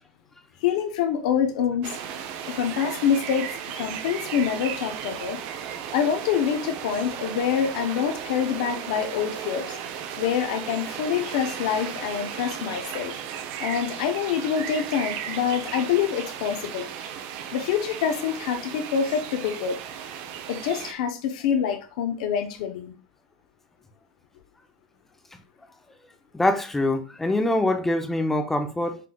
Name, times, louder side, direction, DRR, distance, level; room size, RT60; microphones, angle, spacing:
voice 1, 0.6-2.0 2.5-5.4 5.9-9.8 10.2-13.1 13.6-16.8 17.5-19.8 20.5-22.9, left 8 dB, 70° left, 0.7 m, -26 dB
sound 1, 1.8-20.9, right 8 dB, 50° right, 0.6 m, -35 dB
voice 2, 26.3-29.0, left 1 dB, 5° left, 0.6 m, -24 dB
5.8 x 3.2 x 2.3 m
supercardioid pair, 140°, 4 cm